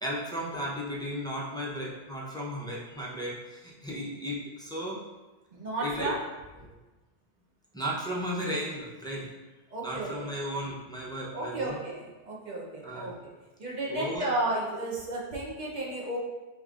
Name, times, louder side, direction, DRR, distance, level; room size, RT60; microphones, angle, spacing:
voice 1, 0.0-5.0 5.8-6.2 7.7-9.3 9.8-11.8 12.8-13.1 13.9-14.3, equal, 5° left, -6 dB, 0.5 m, -35 dB
voice 2, 5.5-6.1 6.6-6.7 9.7-10.3 11.3-13.1 13.6-16.2, right 2 dB, 45° right, -3 dB, 0.9 m, -33 dB
5.3 x 3.0 x 2.5 m, 1.2 s
omnidirectional pair, 1.1 m